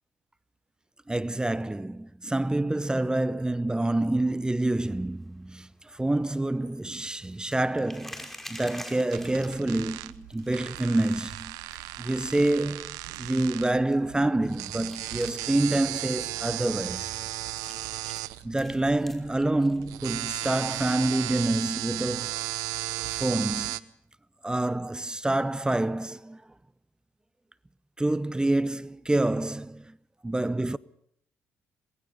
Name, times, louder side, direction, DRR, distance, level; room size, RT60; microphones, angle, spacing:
voice 1, 1.1-11.5 12.0-17.2 18.4-22.4 23.1-23.8 24.4-26.4 28.0-30.0 30.2-30.8, right 2 dB, 15° right, 0.8 m, -27 dB
sound 1, 4.2-22.7, equal, 5° left, 5.5 m, -51 dB
sound 2, 9.1-23.8, right 17 dB, 80° right, 0.8 m, -35 dB
27.5 x 21.0 x 5.5 m
hypercardioid pair, 55°, 6 cm